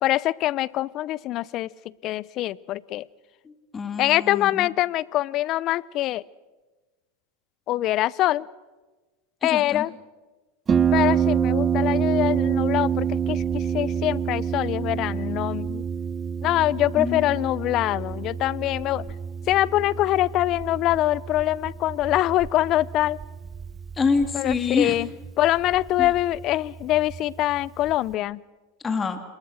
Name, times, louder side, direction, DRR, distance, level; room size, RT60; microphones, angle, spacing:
voice 1, 0.0-3.1 4.0-6.2 7.7-8.5 9.4-9.9 10.9-15.8 16.4-19.1 19.5-23.2 24.3-25.1 25.4-28.4, left 15 dB, 45° left, 23 dB, 0.7 m, -24 dB
voice 2, 3.4-4.7 9.4-9.9 17.0-17.3 23.9-25.0 26.0-26.1 28.8-29.2, left 5 dB, 20° left, 7 dB, 2.7 m, -26 dB
Harp, 10.7-28.1, right 8 dB, 25° right, 1.2 m, -28 dB
27.5 x 21.5 x 6.5 m, 1.2 s
hypercardioid pair, 105°, 0 cm